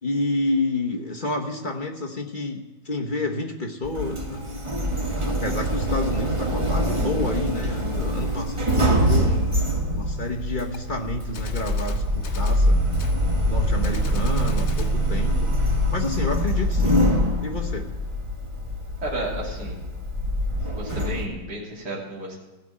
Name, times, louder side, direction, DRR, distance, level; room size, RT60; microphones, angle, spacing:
voice 1, 0.0-4.4 5.3-9.5 9.9-12.8 13.5-15.5 15.9-17.0 17.4-17.9, left 2 dB, 35° left, 0 dB, 0.9 m, -29 dB
Sliding door, 3.8-21.3, equal, 20° right, 0.9 m, -24 dB
Gunshot gunfire, 10.7-10.8 11.3-12.6 13.0-13.2 13.8-15.0, left 6 dB, 65° left, 0.7 m, -41 dB
voice 2, 19.0-19.8 20.7-22.4, right 1 dB, 50° right, -5 dB, 3.5 m, -32 dB
16.5 x 6.1 x 8.7 m, 1.1 s
omnidirectional pair, 2.4 m